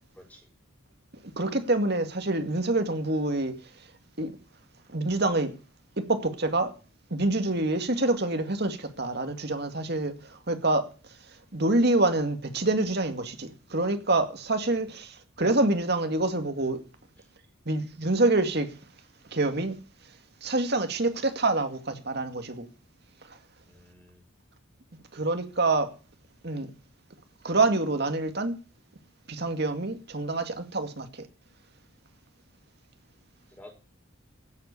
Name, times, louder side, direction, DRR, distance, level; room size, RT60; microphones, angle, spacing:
voice 1, 0.1-0.5 17.2-17.3 23.7-24.2 33.5-33.7, left 1 dB, 10° left, 5.0 m, -51 dB
voice 2, 1.4-3.5 4.2-4.3 4.9-5.5 6.1-6.7 7.1-10.9 11.5-16.8 17.7-18.7 19.3-19.7 20.4-22.6 25.1-25.9 26.4-26.7 27.4-28.6 29.3-31.3, right 2 dB, 50° right, 2.2 m, -26 dB
16.0 x 8.1 x 8.3 m
head